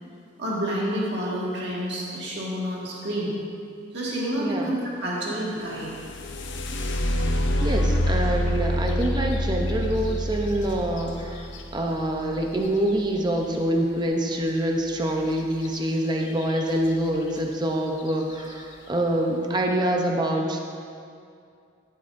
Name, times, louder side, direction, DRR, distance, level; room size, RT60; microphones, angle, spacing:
voice 1, 0.4-3.3 3.9-5.9, equal, 60° right, -6 dB, 1.8 m, -29 dB
voice 2, 4.4-4.7 7.6-20.6, right 1 dB, 20° right, 1 dB, 0.6 m, -26 dB
sound 1, 5.7-13.6 15.6-15.8 16.2-16.8 17.4-17.5 18.0-18.3, equal, 70° left, 0.7 m, -27 dB
13.5 x 7.6 x 2.6 m, 2.4 s
head